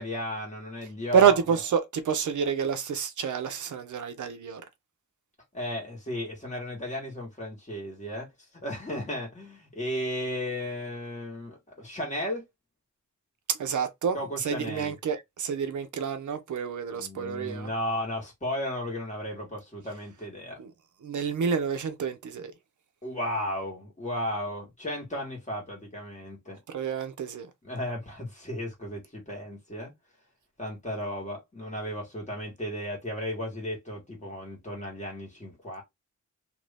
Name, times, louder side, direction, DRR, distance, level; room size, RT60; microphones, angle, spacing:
voice 1, 0.0-1.3 5.5-8.3 8.5-12.4 14.1-14.9 16.9-20.6 23.0-26.6 27.6-29.9 30.6-35.8, left 1 dB, 25° left, 1.6 m, -34 dB
voice 2, 1.1-4.6 13.5-17.7 20.6-20.7 21.0-22.5 26.7-27.5, right 7 dB, 90° right, 0.7 m, -28 dB
3.0 x 2.6 x 3.3 m
wide cardioid pair, 175°, 29 cm